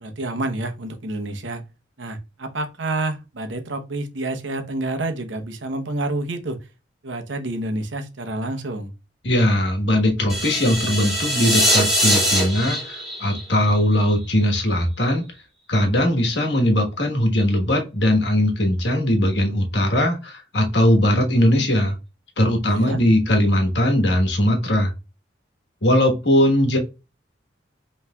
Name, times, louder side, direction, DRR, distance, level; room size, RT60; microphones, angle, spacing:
voice 1, 0.0-1.6 2.0-6.6 7.0-8.9 22.6-23.0, right 2 dB, 85° right, 0.9 m, -28 dB
voice 2, 9.2-15.2 15.7-21.9 22.4-24.9 25.8-26.8, left 1 dB, 70° left, 1.3 m, -19 dB
sound 1, 10.3-14.4, equal, 5° right, 1.7 m, -22 dB
5.6 x 3.2 x 2.3 m
head